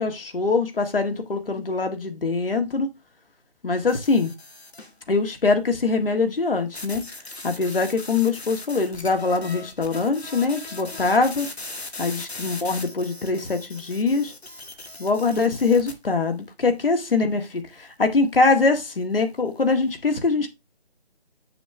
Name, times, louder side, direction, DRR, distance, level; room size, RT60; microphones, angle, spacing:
voice 1, 0.0-2.9 3.6-4.3 5.1-7.0 7.4-11.5 12.0-14.3 15.0-20.5, left 4 dB, 60° left, 1.8 m, -23 dB
sound 1, 3.9-5.0 6.7-15.9, left 2 dB, 85° left, 1.9 m, -39 dB
6.9 x 6.7 x 3.3 m
figure-of-eight pair, 155°, 31 cm